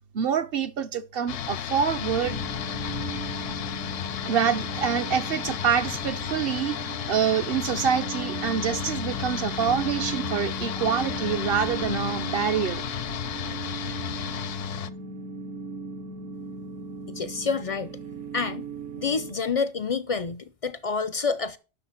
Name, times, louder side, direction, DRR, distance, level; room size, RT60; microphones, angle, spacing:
voice 1, 0.1-2.4 4.2-6.8 7.1-12.8, right 7 dB, 60° right, 0.7 m, -26 dB
sound 1, 1.3-14.9, left 10 dB, 80° left, 1.0 m, -33 dB
sound 2, 2.2-19.4, right 4 dB, 80° right, 1.3 m, -37 dB
voice 2, 17.2-17.9 18.3-18.7 19.0-21.6, left 5 dB, 55° left, 0.4 m, -28 dB
10.0 x 6.4 x 5.7 m
omnidirectional pair, 1.3 m